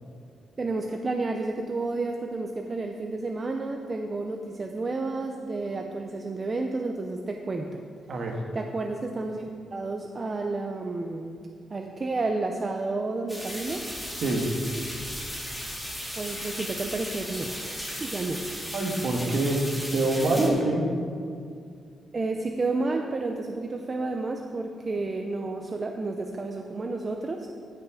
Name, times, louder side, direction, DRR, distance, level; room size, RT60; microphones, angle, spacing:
voice 1, 0.6-7.8 8.5-11.4 11.7-13.8 16.2-18.4 22.1-27.5, right 3 dB, 25° right, 3 dB, 0.5 m, -31 dB
voice 2, 8.1-8.4 14.2-14.5 18.7-20.8, right 2 dB, 50° right, 1 dB, 1.4 m, -25 dB
sound 1, 13.3-20.5, equal, ahead, 1.8 m, -36 dB
15.5 x 6.1 x 4.8 m, 2.4 s
wide cardioid pair, 175°, 0 cm